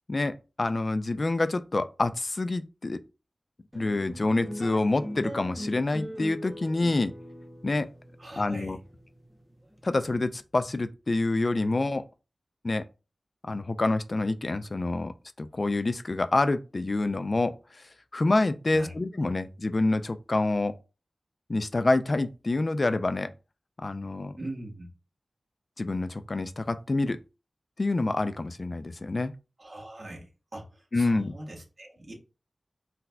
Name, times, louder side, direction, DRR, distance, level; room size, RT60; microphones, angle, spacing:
voice 1, 0.1-3.0 3.7-7.1 7.6-7.9 8.4-8.8 9.8-12.0 12.6-12.9 13.5-17.5 18.1-20.8 21.5-23.3 23.8-24.3 25.8-27.2 27.8-29.3 30.9-31.3, left 2 dB, 50° left, 0.3 m, -27 dB
sound 1, 3.7-10.4, equal, ahead, 0.7 m, -41 dB
voice 2, 8.2-8.8 18.7-18.9 19.2-19.3 24.3-24.9 29.6-32.1, right 1 dB, 55° right, 1.4 m, -41 dB
3.9 x 2.7 x 2.2 m
wide cardioid pair, 60°, 0 cm